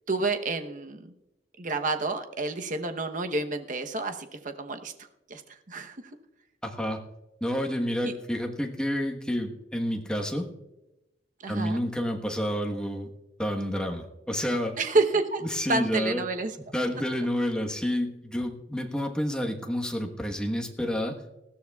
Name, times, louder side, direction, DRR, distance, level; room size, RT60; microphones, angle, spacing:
voice 1, 0.1-1.1 1.6-4.9 5.3-5.4 5.7-6.0 8.0-8.1 11.4-11.8 14.8-15.4 15.7-16.5, right 3 dB, 45° right, 6 dB, 0.9 m, -29 dB
voice 2, 6.6-7.0 7.4-10.5 11.5-13.1 13.4-14.8 15.5-16.2 16.7-21.2, equal, 5° left, 2 dB, 1.2 m, -29 dB
19.5 x 14.0 x 2.4 m, 0.95 s
head